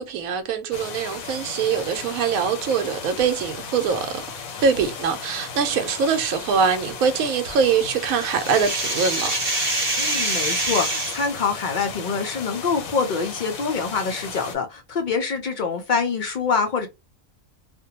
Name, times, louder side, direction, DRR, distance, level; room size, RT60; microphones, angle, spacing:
voice 1, 0.0-4.2 4.6-9.3, right 6 dB, 85° right, 1.0 m, -23 dB
sound 1, 0.7-14.5, left 5 dB, 90° left, 1.1 m, -36 dB
sound 2, 7.5-11.3, right 2 dB, 40° right, 0.6 m, -26 dB
voice 2, 10.0-16.9, left 5 dB, 70° left, 0.4 m, -25 dB
2.5 x 2.1 x 2.8 m
omnidirectional pair, 1.4 m